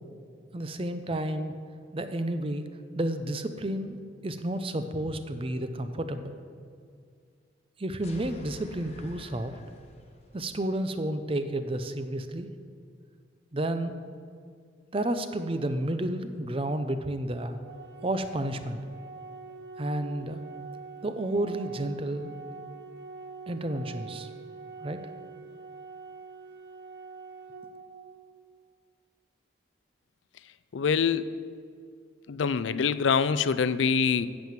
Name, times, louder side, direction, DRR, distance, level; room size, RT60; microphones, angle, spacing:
voice 1, 0.5-1.5 1.9-2.6 2.9-4.0 4.2-6.4 7.8-9.6 10.3-12.5 13.5-14.0 14.9-17.6 18.0-18.8 19.8-20.4 21.0-22.3 23.5-24.3 24.8-25.0, right 1 dB, 30° right, 9 dB, 0.6 m, -31 dB
sound 1, 8.0-10.6, left 1 dB, 35° left, 1.1 m, -49 dB
Organ, 17.6-28.6, right 4 dB, 60° right, 0.8 m, -45 dB
voice 2, 30.7-31.3 32.3-34.3, left 6 dB, 85° left, 15 dB, 0.4 m, -25 dB
8.7 x 7.6 x 7.4 m, 2.2 s
head